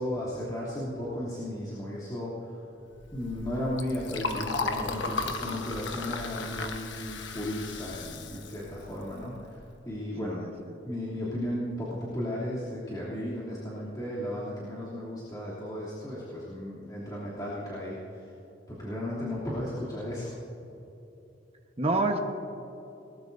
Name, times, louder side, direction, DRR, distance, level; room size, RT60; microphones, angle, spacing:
voice 1, 0.0-2.6 3.1-10.4 10.8-18.3 18.7-20.3, left 1 dB, 20° left, -10 dB, 3.0 m, -35 dB
Liquid, 3.0-9.6, left 3 dB, 80° left, 1.2 m, -36 dB
voice 2, 10.2-10.8 21.8-22.2, right 2 dB, 35° right, 3 dB, 1.2 m, -28 dB
20.5 x 19.5 x 2.7 m, 3.0 s
head